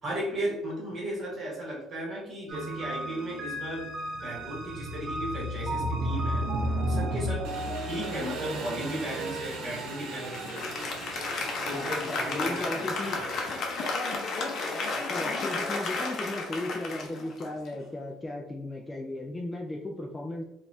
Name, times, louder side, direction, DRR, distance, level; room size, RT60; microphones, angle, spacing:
voice 1, 0.0-3.9 4.2-6.5 6.9-7.4 7.8-10.7 11.6-12.8, right 1 dB, 25° right, -4 dB, 1.4 m, -35 dB
sound 1, 2.5-9.8, equal, 45° right, 0.5 m, -33 dB
Engine, 7.4-13.9, right 3 dB, 70° right, 0.9 m, -40 dB
Applause, 10.3-17.9, left 3 dB, 45° left, 0.6 m, -32 dB
voice 2, 11.7-13.2 14.8-20.4, left 1 dB, 15° left, -1 dB, 0.3 m, -36 dB
3.9 x 2.4 x 2.6 m, 0.84 s
cardioid pair, 160°, 0 cm